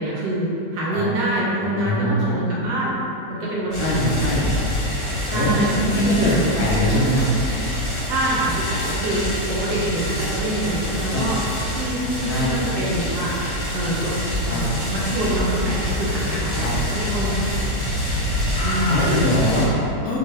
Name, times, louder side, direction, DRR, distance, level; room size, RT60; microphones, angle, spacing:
voice 1, 0.0-2.9 3.3-4.1 5.2-6.6 6.9-7.1 8.0-11.4 11.7-13.3 13.7-14.1 14.4-17.9 18.6-19.4, right 1 dB, 80° right, -5 dB, 1.2 m, -26 dB
voice 2, 1.6-2.4 3.8-4.5 5.3-7.3 11.1-11.2 12.3-12.5 14.5-14.6 16.6-16.7 18.9-20.2, equal, 70° left, -5 dB, 1.2 m, -22 dB
sound 1, 3.7-19.7, left 1 dB, 30° left, 0.7 m, -26 dB
4.3 x 2.2 x 3.0 m, 2.8 s
omnidirectional pair, 1.8 m